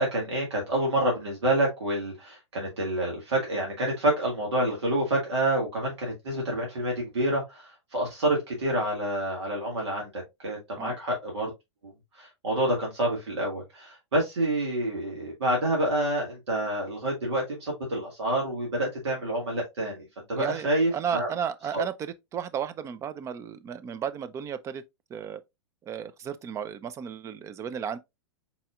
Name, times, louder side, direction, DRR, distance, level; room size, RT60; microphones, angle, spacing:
voice 1, 0.0-11.5 11.8-21.3 21.7-21.8, right 1 dB, 70° right, 1.7 m, -28 dB
voice 2, 20.3-24.8 25.1-25.4 25.9-28.0, right 8 dB, 20° right, 0.4 m, -34 dB
4.1 x 4.1 x 2.4 m
figure-of-eight pair, 105°, 15 cm